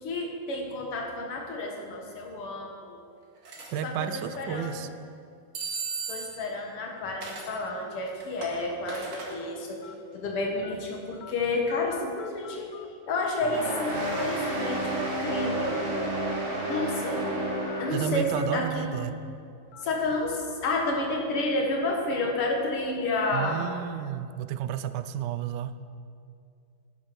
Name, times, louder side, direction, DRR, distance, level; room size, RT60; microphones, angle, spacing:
voice 1, 0.0-3.0 3.8-4.9 6.1-12.7 13.1-15.9 16.7-17.2 17.8-18.9 19.8-23.6, left 2 dB, 90° left, 1 dB, 2.5 m, -30 dB
sound 1, 3.4-3.7 5.5-6.5 7.2-7.5 8.0-9.3, right 4 dB, 60° right, 2.4 m, -36 dB
voice 2, 3.7-4.9 17.9-19.2 23.3-25.7, right 9 dB, 75° right, 12 dB, 1.0 m, -31 dB
sound 2, 7.7-7.9 8.6-8.7 9.8-9.9 10.6-10.7 11.2-11.3 11.7-12.8 13.1-13.8 14.1-14.2 15.5-15.8 16.2-16.3 17.7-17.9 18.3-18.5 18.9-19.1 19.7-19.8, left 9 dB, 65° left, 0.9 m, -45 dB
sound 3, 13.4-18.5, right 1 dB, 25° right, 1.8 m, -31 dB
11.5 x 10.0 x 5.2 m, 2.3 s
omnidirectional pair, 2.4 m